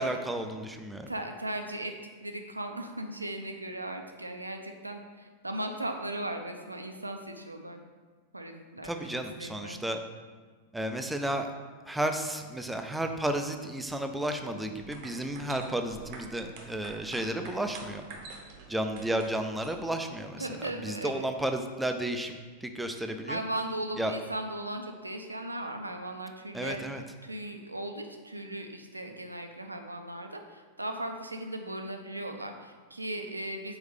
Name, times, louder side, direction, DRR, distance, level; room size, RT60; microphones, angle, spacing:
voice 1, 0.0-1.1 8.8-10.0 10.7-11.5 11.9-18.0 18.7-23.4 24.0-24.1 26.5-27.0, right 1 dB, 5° right, 6 dB, 0.5 m, -32 dB
voice 2, 1.1-1.9 2.2-7.8 8.3-9.8 20.4-21.3 23.3-33.8, right 1 dB, 85° right, 5 dB, 0.5 m, -37 dB
sound 1, 14.6-20.0, right 4 dB, 45° right, 0.8 m, -47 dB
4.8 x 4.2 x 5.0 m, 1.4 s
figure-of-eight pair, 90°, 0 cm